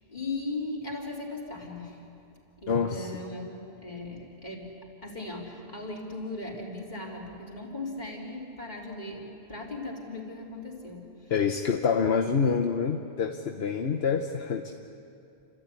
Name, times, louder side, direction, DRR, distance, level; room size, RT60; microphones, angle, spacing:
voice 1, 0.0-2.0 2.6-4.7 5.0-11.3, left 2 dB, 45° left, -3 dB, 4.1 m, -38 dB
voice 2, 2.7-3.2 11.3-14.7, left 6 dB, 75° left, 3 dB, 1.2 m, -27 dB
29.5 x 13.5 x 9.9 m, 2.7 s
omnidirectional pair, 1.1 m